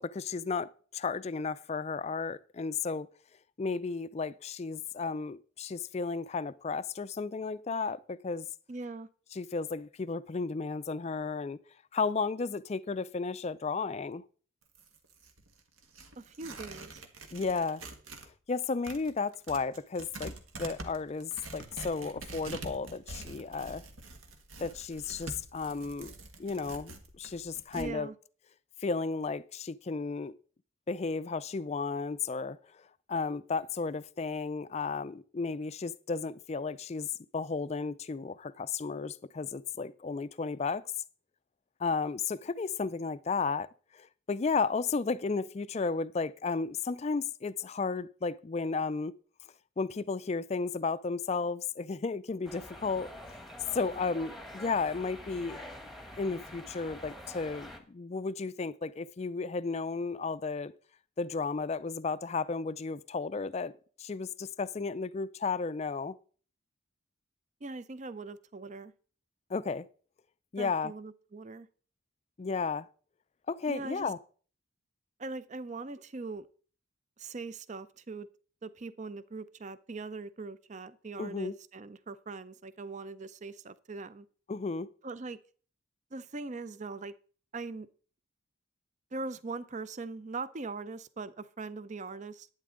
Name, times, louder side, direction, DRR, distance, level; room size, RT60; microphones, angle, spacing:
voice 1, 0.0-3.1 3.6-8.5 9.3-11.6 11.9-14.2 17.3-17.8 18.5-23.8 24.6-26.1 26.4-28.1 28.8-30.3 30.9-32.6 33.1-37.1 37.3-40.8 41.8-43.7 43.9-49.1 49.8-53.1 53.7-55.6 56.2-60.7 61.2-63.7 64.0-66.2 69.5-69.9 70.5-70.9 72.4-72.9 73.5-74.2 81.2-81.5 84.5-84.9, left 4 dB, 30° left, 0.4 m, -33 dB
voice 2, 8.7-9.1 16.2-17.0 27.8-28.1 67.6-68.9 70.6-71.7 73.7-74.1 75.2-76.5 77.2-78.3 78.6-84.3 85.0-85.4 86.1-87.1 87.5-87.9 89.1-92.5, right 3 dB, 35° right, 0.5 m, -41 dB
Tearing, 14.6-18.3 18.6-27.9, right 2 dB, 75° right, 1.5 m, -46 dB
sound 1, 52.4-57.8, left 1 dB, ahead, 1.1 m, -46 dB
11.5 x 9.4 x 3.8 m
head